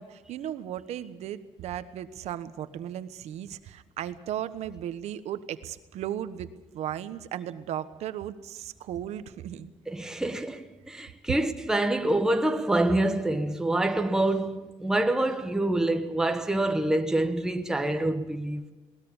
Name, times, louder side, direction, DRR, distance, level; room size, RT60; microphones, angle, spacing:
voice 1, 0.0-9.7, right 10 dB, 70° right, 1.2 m, -36 dB
voice 2, 9.9-18.6, right 1 dB, 5° right, 1.2 m, -26 dB
20.5 x 19.5 x 7.2 m
cardioid pair, 155°, 12 cm